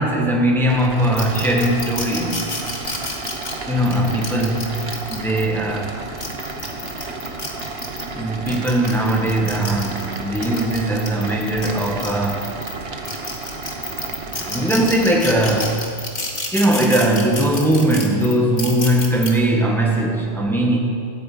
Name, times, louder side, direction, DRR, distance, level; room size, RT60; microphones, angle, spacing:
voice 1, 0.0-2.6 3.7-5.9 8.1-12.5 14.4-15.9 16.5-20.8, right 1 dB, ahead, 0 dB, 1.4 m, -20 dB
sound 1, 0.7-15.8, right 3 dB, 70° right, 1.4 m, -32 dB
sound 2, 1.2-5.4 6.0-8.1 8.5-12.7 13.0-19.3, left 2 dB, 45° left, 1.9 m, -30 dB
15.0 x 9.2 x 8.4 m, 2.3 s
omnidirectional pair, 1.0 m